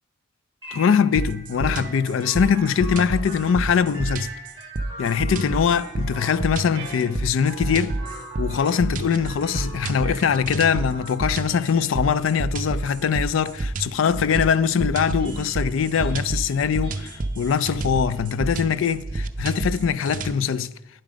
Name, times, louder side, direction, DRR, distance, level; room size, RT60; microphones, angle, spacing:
sound 1, 0.6-19.3, right 1 dB, 25° right, 2.0 m, -42 dB
voice 1, 0.7-4.3 5.0-8.0 8.4-20.7, left 7 dB, 75° left, 0.4 m, -22 dB
sound 2, 1.2-20.3, right 2 dB, 40° right, 0.5 m, -29 dB
9.9 x 7.4 x 5.0 m
head